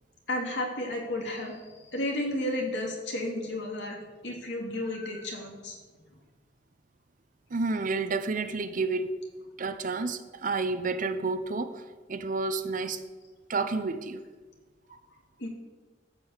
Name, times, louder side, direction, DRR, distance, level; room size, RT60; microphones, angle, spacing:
voice 1, 0.3-5.8 15.4-15.5, left 1 dB, 65° left, 0 dB, 2.6 m, -33 dB
voice 2, 7.5-9.1 9.6-11.8 12.1-13.0 13.5-14.3, right 3 dB, 45° right, 10 dB, 0.7 m, -30 dB
13.5 x 5.3 x 8.0 m, 1.3 s
head